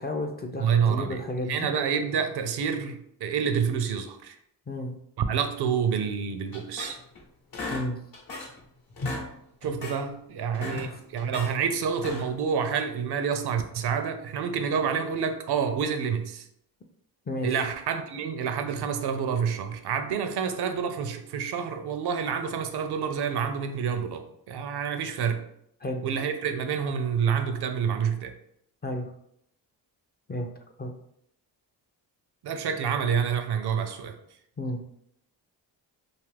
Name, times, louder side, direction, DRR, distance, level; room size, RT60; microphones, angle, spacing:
voice 1, 0.0-1.7 4.7-5.0 7.7-8.0 10.7-11.0 17.3-17.5 25.8-26.0 28.8-29.1 30.3-30.5 30.8-30.9 34.6-34.8, left 1 dB, 25° left, 3 dB, 0.4 m, -32 dB
voice 2, 0.6-4.4 5.2-7.0 9.6-16.5 17.4-25.4 26.0-28.3 32.4-34.2, right 7 dB, 65° right, 8 dB, 0.5 m, -28 dB
sound 1, 6.5-7.2 7.5-8.6 8.9-9.3 9.6-10.0 10.4-11.5 11.9-12.4, left 2 dB, 55° left, 0.9 m, -36 dB
2.6 x 2.4 x 3.3 m, 0.73 s
cardioid pair, 70°, 43 cm